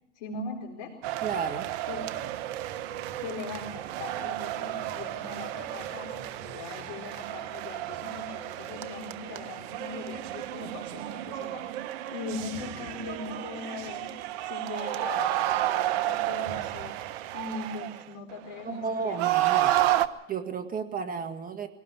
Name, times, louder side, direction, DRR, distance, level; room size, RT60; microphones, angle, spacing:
voice 1, 0.1-0.9 1.9-2.3 3.2-11.8 12.1-19.2, left 3 dB, 65° left, 1 dB, 4.7 m, -40 dB
sound 1, 1.0-20.1, right 14 dB, 55° right, 1.4 m, -31 dB
voice 2, 1.2-1.7 18.6-19.7 20.3-21.7, right 5 dB, 25° right, 8 dB, 1.8 m, -33 dB
24.0 x 18.5 x 5.9 m, 0.89 s
hypercardioid pair, 110°, 37 cm